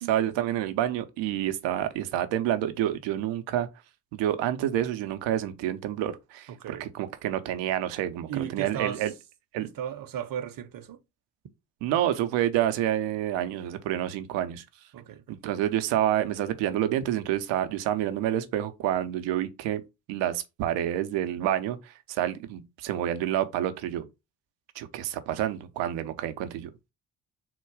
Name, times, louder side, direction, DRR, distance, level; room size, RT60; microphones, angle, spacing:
voice 1, 0.1-3.7 4.1-9.1 9.5-9.7 11.8-14.6 15.4-19.8 20.1-24.1 24.8-26.7, right 12 dB, 85° right, 0.7 m, -28 dB
voice 2, 6.5-6.9 8.3-9.1 9.6-11.0 14.9-15.4, right 9 dB, 50° right, 0.8 m, -35 dB
3.9 x 2.3 x 4.5 m
supercardioid pair, 60°, 43 cm